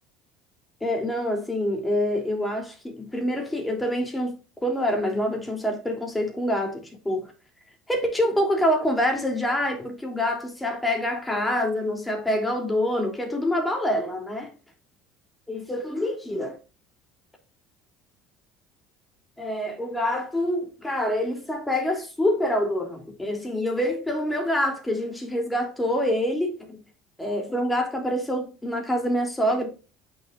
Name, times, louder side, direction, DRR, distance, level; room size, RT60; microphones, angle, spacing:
voice 1, 0.8-4.3 4.6-7.3 7.9-14.5 15.5-16.6 19.4-26.8 27.2-29.7, left 1 dB, 10° left, 3.3 m, -26 dB
8.4 x 6.5 x 2.6 m
supercardioid pair, 80°, 0 cm